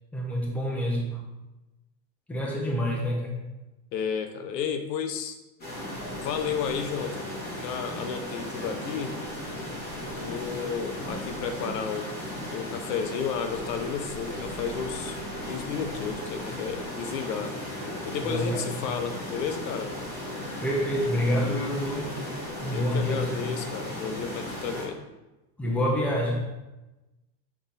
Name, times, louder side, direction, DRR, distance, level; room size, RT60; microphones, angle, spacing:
voice 1, 0.1-1.2 2.3-3.4 18.2-18.6 18.9-19.0 20.6-22.2 22.6-23.5 25.6-26.5, equal, 5° left, -2 dB, 0.8 m, -27 dB
voice 2, 3.9-5.4 6.2-9.2 10.1-12.2 12.5-15.2 15.5-17.6 18.0-20.0 22.6-25.0, left 7 dB, 80° left, 8 dB, 0.9 m, -32 dB
sound 1, 5.6-24.9, left 1 dB, 20° left, 2.4 m, -36 dB
7.8 x 4.0 x 4.1 m, 1.0 s
supercardioid pair, 155°, 50 cm